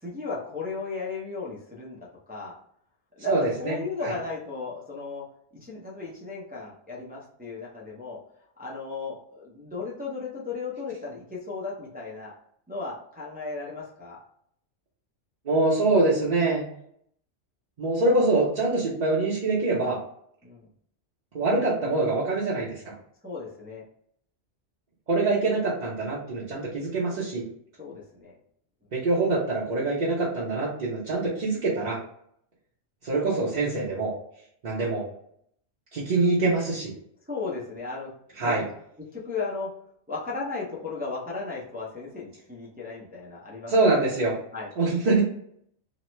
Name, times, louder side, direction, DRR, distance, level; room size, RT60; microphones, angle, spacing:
voice 1, 0.0-2.5 3.2-3.3 3.6-5.2 5.6-8.2 8.6-12.3 12.7-14.2 20.4-20.7 23.2-23.8 27.8-28.4 37.3-38.1 38.4-38.7 39.1-39.7 40.1-43.7 44.0-44.1 44.5-44.7, left 4 dB, 15° right, -6 dB, 0.4 m, -35 dB
voice 2, 3.3-4.1 15.4-16.6 17.8-20.0 21.3-22.9 25.1-27.4 28.9-32.0 33.0-34.1 34.6-35.0 35.9-36.9 38.4-38.6 43.7-44.3 44.8-45.2, right 2 dB, 45° right, -7 dB, 0.7 m, -24 dB
3.0 x 2.0 x 3.0 m, 0.69 s
omnidirectional pair, 1.2 m